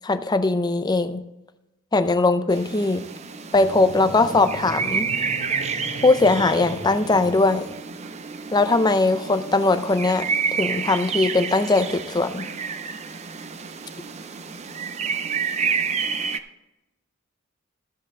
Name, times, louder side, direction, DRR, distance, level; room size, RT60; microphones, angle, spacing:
voice 1, 0.0-1.2 1.9-3.0 3.5-5.1 6.0-7.7 8.5-10.3 10.5-12.5, left 3 dB, 20° left, 10 dB, 0.5 m, -20 dB
sound 1, 2.5-16.4, right 6 dB, 30° right, 0.5 m, -30 dB
sound 2, 3.5-7.8, right 1 dB, 75° right, 2.9 m, -37 dB
13.5 x 7.8 x 3.6 m, 0.97 s
head